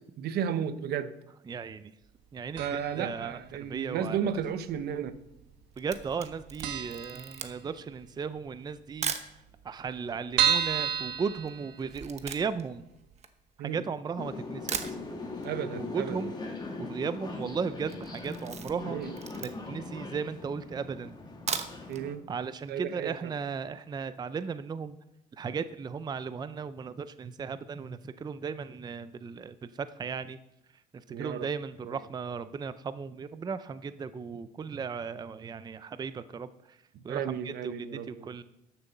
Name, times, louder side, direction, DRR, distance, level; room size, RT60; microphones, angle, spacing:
voice 1, 0.2-1.1 2.6-5.1 13.6-13.8 15.4-16.2 18.9-19.1 21.9-22.2 22.7-23.3 31.1-31.5 31.8-32.0 37.1-38.4, right 8 dB, 70° right, 0.9 m, -33 dB
voice 2, 1.5-1.9 2.3-4.4 5.8-9.1 9.6-12.8 13.6-15.0 15.8-19.0 19.4-21.2 22.3-25.0 25.3-30.4 30.9-36.8 37.0-38.4, right 5 dB, 25° right, 0.5 m, -36 dB
sound 1, 2.6-3.1 3.4-3.5 4.4-5.1 5.4-5.5 5.8-5.9 6.3-6.4 6.6-7.9 8.3-8.4 8.7-8.8 9.0-9.1 9.6-12.2 12.7-12.8 13.1-13.2, right 8 dB, 85° right, 1.3 m, -31 dB
Camera, 5.5-9.4 10.0-10.1 10.3-14.0 14.4-14.5 14.7-15.5 15.8-15.9 16.2-16.3 16.5-16.9 17.2-17.5 17.8-19.8 20.4-20.5 21.3-22.0 22.4-22.5 22.9-23.0, right 6 dB, 40° right, 1.1 m, -38 dB
sound 2, 14.2-22.1, left 3 dB, 25° left, 1.9 m, -40 dB
11.0 x 7.1 x 6.7 m
cardioid pair, 110°, 17 cm